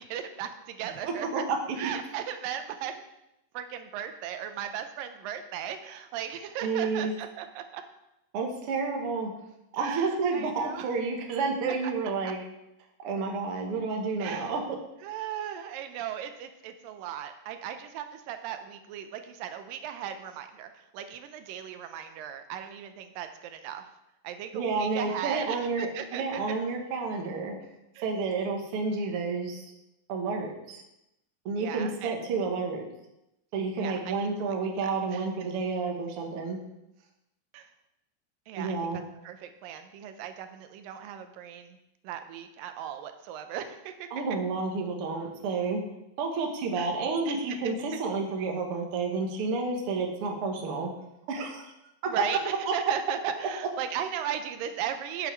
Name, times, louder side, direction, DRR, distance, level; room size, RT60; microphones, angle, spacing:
voice 1, 0.0-1.4 1.8-3.0 3.5-7.8 9.8-10.9 11.7-11.9 12.3-12.4 14.2-14.5 15.0-23.8 24.2-26.4 28.0-28.1 31.6-32.2 33.8-34.3 34.8-35.2 37.5-37.7 38.5-38.8 39.2-41.8 42.0-44.1 46.8-46.9 47.3-47.7 52.1-55.3, right 9 dB, 85° right, 8 dB, 2.5 m, -37 dB
voice 2, 1.1-1.9 6.6-7.1 8.3-9.3 9.7-12.4 13.0-14.8 24.5-27.5 28.0-29.7 30.1-30.8 31.5-32.9 33.5-36.6 38.6-39.0 44.1-45.8 46.2-50.9 51.3-51.7, right 4 dB, 55° right, 1 dB, 1.9 m, -30 dB
9.2 x 7.7 x 4.5 m, 0.87 s
omnidirectional pair, 3.9 m